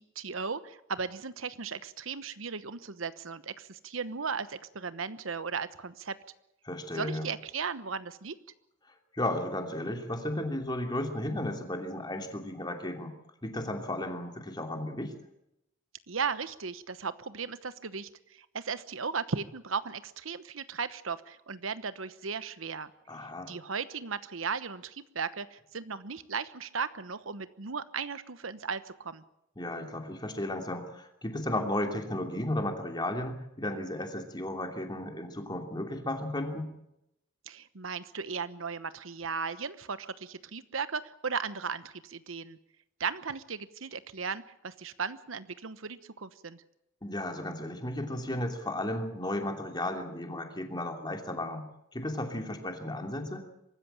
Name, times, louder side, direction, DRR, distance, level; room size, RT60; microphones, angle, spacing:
voice 1, 0.0-6.2 6.9-8.4 16.1-22.9 23.5-29.2 37.5-42.6 43.0-46.6, right 5 dB, 90° right, 14 dB, 1.1 m, -36 dB
voice 2, 6.6-7.3 9.1-13.1 13.4-15.1 23.1-23.5 29.6-36.7 47.0-51.6 51.9-53.5, left 1 dB, 20° left, 4 dB, 2.8 m, -34 dB
24.0 x 13.5 x 8.9 m, 0.84 s
head